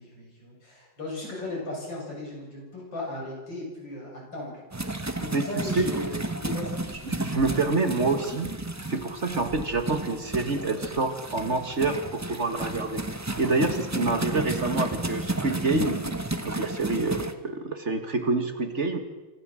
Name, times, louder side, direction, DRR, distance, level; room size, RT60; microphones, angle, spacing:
voice 1, 0.0-4.5 4.8-6.8, left 2 dB, 85° left, -3 dB, 8.4 m, -36 dB
Sunken Garden Waterwheel, 4.7-17.3, right 2 dB, 15° right, 0.7 m, -33 dB
voice 2, 7.1-8.5 8.9-13.0 13.4-16.0 16.4-19.0, right 3 dB, 40° right, 7 dB, 1.9 m, -27 dB
25.5 x 14.0 x 7.7 m, 1.2 s
omnidirectional pair, 2.0 m